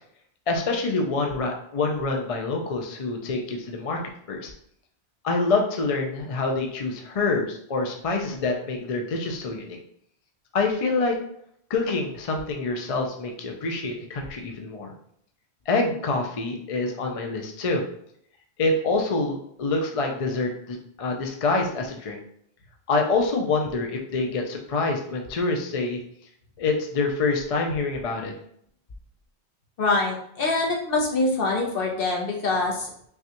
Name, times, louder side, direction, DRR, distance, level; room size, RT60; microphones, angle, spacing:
voice 1, 0.5-4.0 4.3-4.5 5.2-9.8 10.5-11.2 11.7-14.9 15.7-17.8 18.6-22.2 22.9-26.0 26.6-28.3, left 3 dB, 45° left, 2 dB, 0.5 m, -26 dB
voice 2, 29.8-32.9, left 3 dB, 60° left, 0 dB, 1.0 m, -24 dB
5.4 x 2.3 x 2.9 m, 0.68 s
omnidirectional pair, 1.1 m